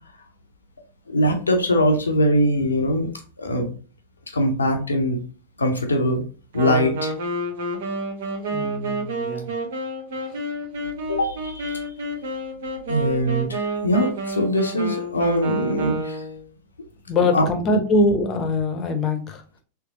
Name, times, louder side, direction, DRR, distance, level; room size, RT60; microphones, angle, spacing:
voice 1, 1.1-3.1 3.4-3.7 4.3-5.2 5.6-6.2 6.5-7.1 11.1-11.8 12.9-16.2 17.3-17.5, equal, 75° left, 5 dB, 0.8 m, -22 dB
Wind instrument woodwind instrument, 6.5-16.4, right 1 dB, 60° right, 0.8 m, -29 dB
voice 2, 8.5-9.5 10.3-10.5 17.1-19.4, left 2 dB, 30° left, 6 dB, 0.8 m, -23 dB
3.5 x 3.3 x 2.9 m, 0.37 s
figure-of-eight pair, 90°, 0 cm